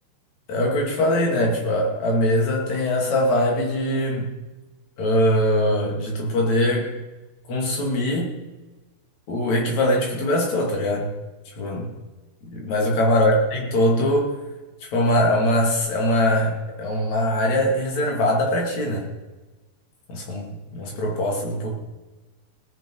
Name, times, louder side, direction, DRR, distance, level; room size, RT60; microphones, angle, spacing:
voice 1, 0.5-4.3 5.0-6.9 7.5-8.4 9.3-11.1 11.6-11.9 12.5-14.3 14.9-19.1 20.1-21.7, left 1 dB, 45° left, 0 dB, 3.3 m, -22 dB
18.5 x 9.5 x 4.7 m, 1.1 s
omnidirectional pair, 4.9 m